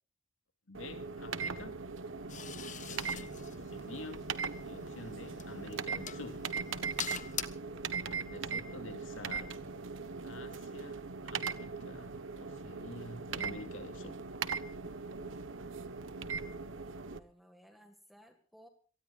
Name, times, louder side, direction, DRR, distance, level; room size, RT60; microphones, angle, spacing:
voice 1, 0.7-1.8 2.6-4.2 4.7-6.4 8.1-9.6 10.2-14.2, left 2 dB, 80° left, 2.6 m, -49 dB
sound 1, 0.7-17.2, right 5 dB, 75° right, 1.2 m, -40 dB
sound 2, 2.3-7.4, left 8 dB, 40° left, 1.2 m, -45 dB
voice 2, 17.0-18.7, equal, ahead, 1.9 m, -59 dB
27.0 x 19.0 x 2.5 m
head